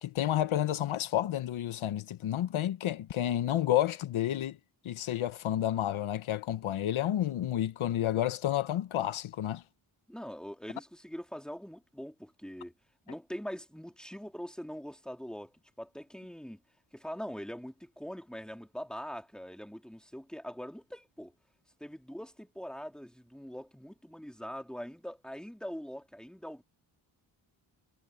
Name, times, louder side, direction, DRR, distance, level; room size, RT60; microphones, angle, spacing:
voice 1, 0.0-4.6 4.8-9.6, left 12 dB, 80° left, 1.1 m, -30 dB
voice 2, 10.1-12.7 13.0-16.6 16.9-21.3 21.8-26.6, equal, ahead, 3.2 m, -43 dB
cardioid pair, 55°, 47 cm